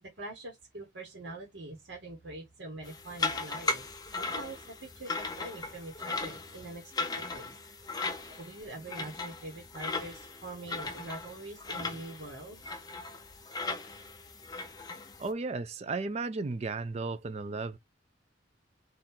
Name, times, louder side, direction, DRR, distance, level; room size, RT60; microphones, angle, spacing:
voice 1, 0.0-3.8 4.1-7.5 8.3-12.6, right 2 dB, 70° right, 1.2 m, -44 dB
sound 1, 2.8-15.3, left 3 dB, 20° left, 0.6 m, -37 dB
voice 2, 15.2-17.8, right 3 dB, 35° right, 0.4 m, -34 dB
3.7 x 2.5 x 4.3 m
head